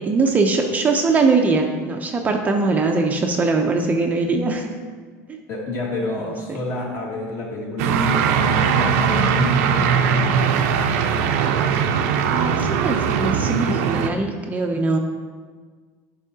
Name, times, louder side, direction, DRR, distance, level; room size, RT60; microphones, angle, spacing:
voice 1, 0.0-4.7 5.3-5.4 12.3-15.0, right 3 dB, 20° right, 3 dB, 0.5 m, -21 dB
voice 2, 5.5-10.3, left 2 dB, 40° left, -2 dB, 1.8 m, -29 dB
sound 1, 7.8-14.1, right 6 dB, 85° right, 0.6 m, -20 dB
11.0 x 5.5 x 2.8 m, 1.5 s
cardioid pair, 150°, 8 cm